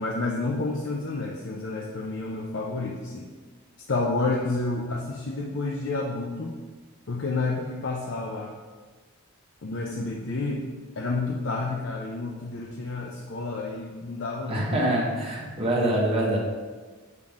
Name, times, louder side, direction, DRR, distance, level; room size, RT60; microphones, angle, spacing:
voice 1, 0.0-3.3 3.9-6.6 7.1-8.6 9.6-10.7 11.0-14.7, left 3 dB, 60° left, -1 dB, 0.7 m, -30 dB
voice 2, 14.5-16.4, right 1 dB, 30° right, -4 dB, 1.6 m, -25 dB
7.3 x 5.9 x 3.6 m, 1.4 s
head